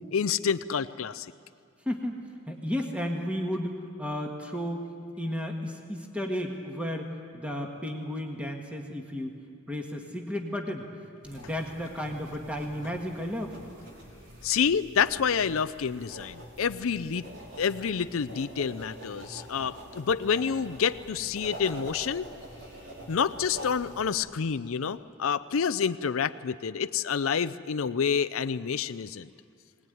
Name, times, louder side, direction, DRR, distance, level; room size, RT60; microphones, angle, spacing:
voice 1, 0.1-1.3 14.4-17.3 17.6-22.3 23.1-29.3, left 6 dB, 75° left, 12 dB, 0.5 m, -28 dB
voice 2, 1.9-4.8 5.2-9.4 9.7-10.9 11.2-13.6, equal, 5° right, 2 dB, 1.7 m, -33 dB
sound 1, 11.2-24.1, equal, 60° right, 4.4 m, -45 dB
22.0 x 19.5 x 9.2 m, 2.2 s
head